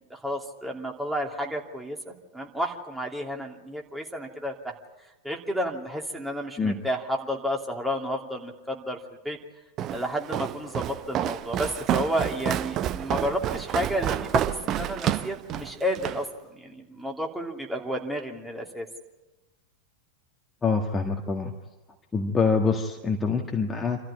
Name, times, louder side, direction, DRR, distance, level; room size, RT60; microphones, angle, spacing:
voice 1, 0.1-4.7 5.2-9.0 9.2-9.4 9.9-18.9, equal, 5° right, 1 dB, 2.9 m, -31 dB
Walk footsteps, 9.8-16.2, right 11 dB, 35° right, 0.8 m, -29 dB
voice 2, 20.6-21.5 22.1-24.0, left 4 dB, 15° left, 2 dB, 1.8 m, -25 dB
27.5 x 14.0 x 10.0 m, 1.1 s
figure-of-eight pair, 90°, 0 cm